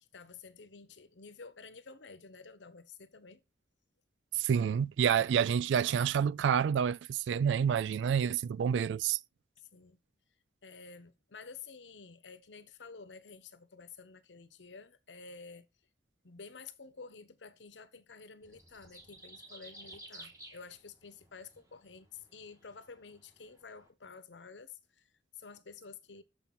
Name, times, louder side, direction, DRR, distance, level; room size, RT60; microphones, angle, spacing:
voice 1, 0.1-3.4 9.6-10.0 10.6-15.7 16.2-26.2, left 5 dB, 80° left, 0.9 m, -51 dB
voice 2, 4.4-9.2, right 8 dB, 85° right, 0.3 m, -28 dB
sound 1, 18.4-23.9, right 2 dB, 20° right, 1.9 m, -54 dB
6.9 x 5.5 x 4.3 m
head